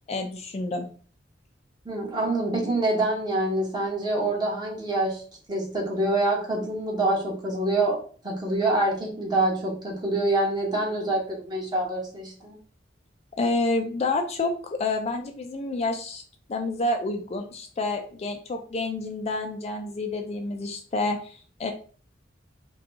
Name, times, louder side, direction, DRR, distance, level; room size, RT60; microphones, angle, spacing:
voice 1, 0.1-0.9 13.4-16.2 16.5-21.7, left 2 dB, 35° left, 4 dB, 0.4 m, -29 dB
voice 2, 1.8-5.2 5.5-8.0 8.2-12.5, right 2 dB, 25° right, -2 dB, 1.2 m, -26 dB
5.0 x 2.3 x 2.8 m, 0.42 s
head